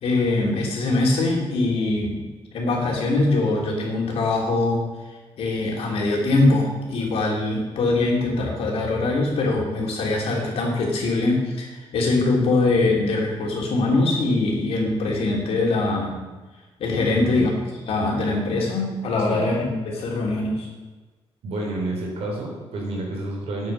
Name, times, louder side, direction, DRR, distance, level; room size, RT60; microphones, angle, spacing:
voice 1, 0.0-2.2 2.5-4.8 5.4-16.2 16.8-17.5 17.9-20.7, left 2 dB, 75° left, -1 dB, 3.0 m, -22 dB
voice 2, 17.1-17.5 19.2-19.5 21.4-23.7, right 2 dB, 80° right, 0 dB, 3.4 m, -29 dB
9.5 x 8.3 x 5.5 m, 1.3 s
cardioid pair, 140°, 10 cm